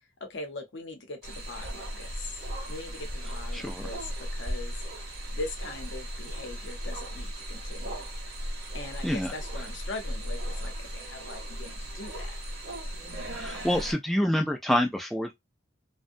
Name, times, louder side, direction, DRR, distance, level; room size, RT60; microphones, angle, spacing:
voice 1, 0.2-2.4 2.7-4.8 5.3-8.1 8.7-12.4, left 2 dB, 60° left, 0.7 m, -41 dB
sound 1, 1.2-13.9, equal, 50° right, 0.7 m, -36 dB
voice 2, 3.5-3.9 9.0-9.3 13.3-15.3, equal, ahead, 0.3 m, -27 dB
2.6 x 2.1 x 2.5 m
head